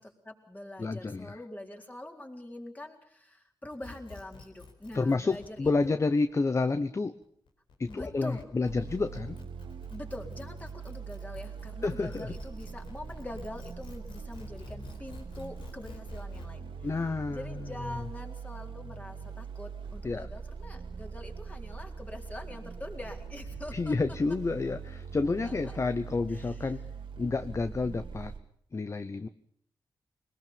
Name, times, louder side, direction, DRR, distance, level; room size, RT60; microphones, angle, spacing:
voice 1, 0.0-6.0 7.9-8.4 9.9-16.7 17.3-24.2 25.4-25.8 26.3-26.7, left 1 dB, 20° left, 2 dB, 4.0 m, -44 dB
voice 2, 0.8-1.4 4.9-7.1 7.8-9.4 11.8-12.3 16.8-17.6 20.0-20.3 23.7-26.8 27.2-28.3 28.7-29.3, left 3 dB, 35° left, 11 dB, 0.9 m, -30 dB
sound 1, 3.7-16.5, left 4 dB, 80° left, 4.7 m, -50 dB
noise bass drone, 8.7-28.4, right 5 dB, 85° right, 2.2 m, -42 dB
22.5 x 20.0 x 7.1 m, 0.65 s
cardioid pair, 85°, 8 cm